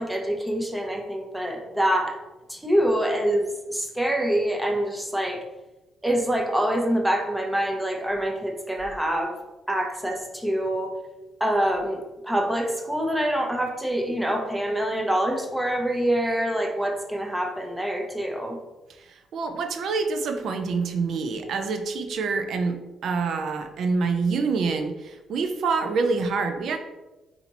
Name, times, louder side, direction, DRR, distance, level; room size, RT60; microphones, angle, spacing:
voice 1, 0.0-2.2 2.5-5.4 6.0-9.4 9.7-11.0 11.4-18.6, right 1 dB, 5° right, 2 dB, 0.8 m, -25 dB
voice 2, 19.0-26.8, right 4 dB, 65° right, 6 dB, 0.6 m, -26 dB
4.1 x 2.8 x 4.2 m, 1.1 s
cardioid pair, 90°, 0 cm